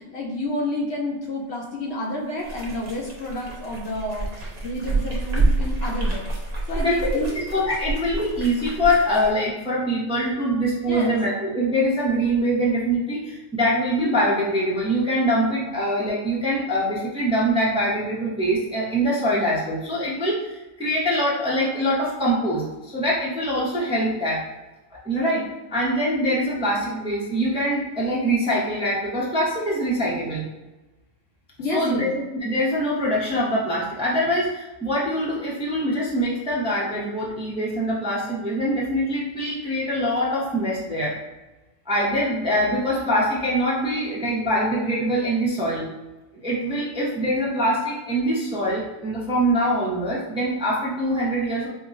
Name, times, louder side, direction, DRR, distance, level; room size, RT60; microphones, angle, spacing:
voice 1, 0.0-6.3 6.7-7.4 10.9-11.1 31.6-32.1, left 1 dB, 60° left, -1 dB, 0.8 m, -29 dB
sound 1, 2.4-9.3, right 2 dB, 35° right, 0.8 m, -27 dB
voice 2, 6.7-24.4 24.9-30.5 31.7-41.1 41.9-45.9 46.4-51.7, equal, 5° right, -6 dB, 0.5 m, -24 dB
5.1 x 2.6 x 2.5 m, 1.1 s
omnidirectional pair, 1.4 m